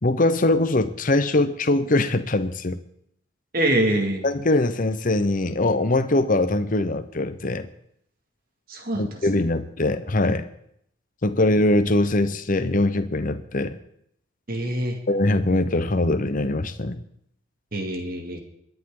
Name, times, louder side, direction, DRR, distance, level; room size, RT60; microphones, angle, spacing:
voice 1, 0.0-2.8 4.2-7.7 8.9-10.5 11.2-13.8 15.1-17.0, left 2 dB, 40° left, 10 dB, 0.8 m, -22 dB
voice 2, 3.5-4.2 8.7-9.0 14.5-15.0 17.7-18.4, right 1 dB, 45° right, 3 dB, 2.3 m, -24 dB
22.0 x 10.5 x 3.8 m, 0.72 s
head